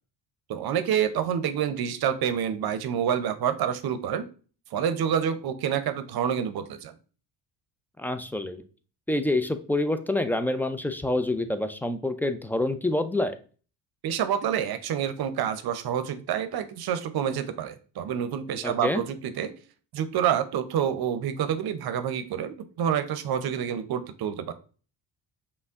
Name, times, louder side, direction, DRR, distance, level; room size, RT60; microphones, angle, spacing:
voice 1, 0.5-4.3 4.7-6.9 14.0-19.5 19.9-24.5, right 9 dB, 55° right, 10 dB, 0.7 m, -28 dB
voice 2, 8.0-8.6 9.1-13.4 18.6-19.0, left 1 dB, 5° left, 10 dB, 0.4 m, -27 dB
5.5 x 2.2 x 3.5 m, 0.38 s
supercardioid pair, 65°, 44 cm